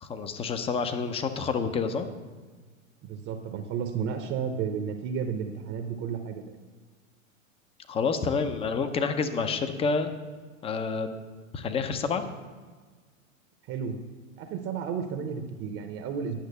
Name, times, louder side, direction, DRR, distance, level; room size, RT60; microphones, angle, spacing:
voice 1, 0.0-2.1 7.9-10.1 10.6-11.1 11.5-12.2, left 5 dB, 15° left, 9 dB, 0.6 m, -28 dB
voice 2, 3.0-6.6 13.6-14.0 14.4-16.4, right 6 dB, 30° right, 6 dB, 0.8 m, -32 dB
10.5 x 6.2 x 6.7 m, 1.4 s
hypercardioid pair, 115°, 41 cm